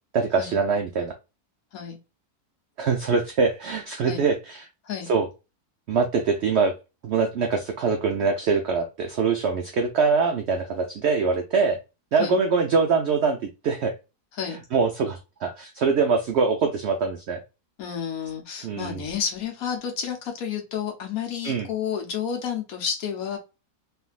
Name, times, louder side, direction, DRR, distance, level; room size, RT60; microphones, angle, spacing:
voice 1, 0.1-1.1 2.8-4.7 5.1-5.3 5.9-6.7 7.0-11.8 12.1-13.4 13.6-13.9 14.7-17.4 18.6-19.0 21.4-21.7, right 5 dB, 80° right, 5 dB, 0.6 m, -23 dB
voice 2, 17.8-23.4, left 8 dB, 70° left, 3 dB, 1.2 m, -30 dB
3.4 x 2.5 x 2.2 m, 0.28 s
omnidirectional pair, 1.7 m